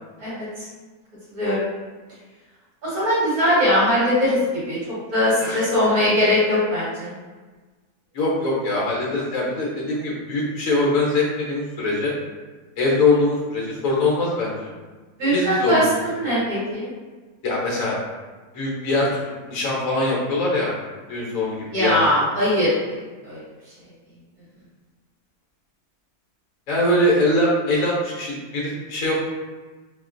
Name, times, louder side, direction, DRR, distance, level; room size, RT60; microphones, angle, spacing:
voice 1, 1.3-1.7 2.8-4.4 4.7-4.8 5.1-7.1 15.2-16.9 21.7-23.0 23.3-23.4, equal, 70° right, -10 dB, 2.1 m, -20 dB
voice 2, 5.4-5.8 8.1-12.1 12.8-14.7 15.3-15.8 17.4-18.0 18.5-19.1 19.5-20.7 21.1-22.0 26.7-29.1, left 2 dB, 65° left, -4 dB, 1.1 m, -22 dB
3.7 x 2.4 x 2.4 m, 1.3 s
omnidirectional pair, 1.6 m